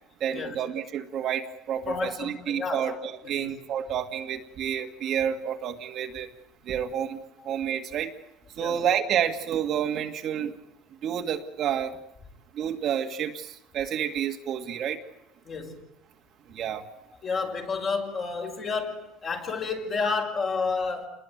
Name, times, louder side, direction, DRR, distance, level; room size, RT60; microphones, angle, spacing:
voice 1, 0.2-6.3 6.7-8.1 8.6-10.6 11.0-12.0 12.5-15.0 16.5-16.9, right 9 dB, 40° right, 2.0 m, -29 dB
voice 2, 1.9-3.0 3.2-3.5 8.6-8.8 15.5-15.8 17.2-21.1, left 4 dB, 30° left, 5.3 m, -30 dB
29.5 x 21.0 x 9.3 m
cardioid pair, 170°, 0 cm